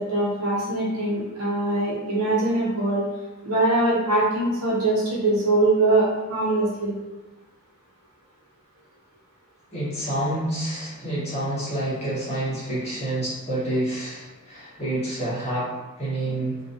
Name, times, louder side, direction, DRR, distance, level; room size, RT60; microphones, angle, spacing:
voice 1, 0.0-3.1 3.4-6.9, right 2 dB, 80° right, -7 dB, 1.3 m, -22 dB
voice 2, 9.7-16.6, right 1 dB, 30° left, -9 dB, 1.3 m, -28 dB
2.9 x 2.6 x 2.7 m, 1.2 s
head